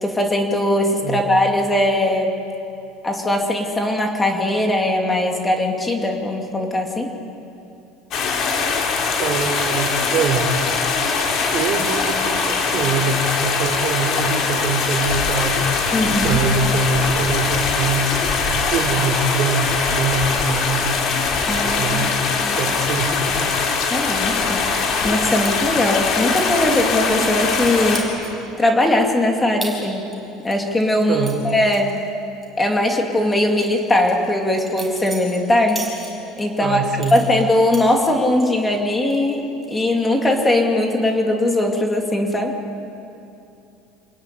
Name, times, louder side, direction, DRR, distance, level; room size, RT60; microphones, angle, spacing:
voice 1, 0.0-2.4 3.0-7.1 15.9-16.4 21.4-22.1 22.4-22.6 23.9-24.7 25.0-28.1 28.6-30.1 30.4-32.0 32.6-35.8 36.4-36.8 37.1-42.6, left 1 dB, 10° left, 2 dB, 2.4 m, -20 dB
sound 1, 8.1-28.0, left 5 dB, 35° left, 3.7 m, -21 dB
voice 2, 9.2-10.7 11.5-15.7 16.2-18.3 18.7-21.0 21.6-23.5 31.1-31.5 36.6-37.2, right 4 dB, 40° right, 5 dB, 3.3 m, -24 dB
sound 2, 25.4-25.5 26.3-26.5 26.8-27.7 27.9-28.5 28.9-29.0 29.6-29.7 30.1-32.5 32.7-32.9 33.3-36.5 37.0-38.5 38.9-39.3 39.6-40.0, right 3 dB, 5° right, 5.6 m, -36 dB
28.0 x 20.0 x 9.9 m, 2.7 s
cardioid pair, 180°, 0 cm